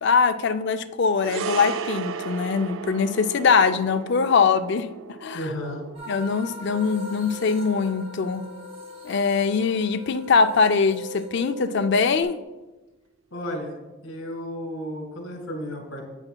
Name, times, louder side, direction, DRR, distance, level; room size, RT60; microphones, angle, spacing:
voice 1, 0.0-4.9 5.2-5.5 6.1-8.4 9.0-12.4, left 5 dB, 55° left, 10 dB, 0.4 m, -22 dB
sound 1, 1.2-9.7 9.9-10.1, right 6 dB, 65° right, 0.4 m, -36 dB
voice 2, 5.3-5.8 13.3-13.7 14.0-16.0, equal, 75° left, 2 dB, 2.0 m, -33 dB
sound 2, 5.9-11.7, equal, 30° right, 1.9 m, -44 dB
sound 3, 6.6-12.2, left 1 dB, 5° left, 1.6 m, -40 dB
9.8 x 8.9 x 2.2 m, 1.1 s
head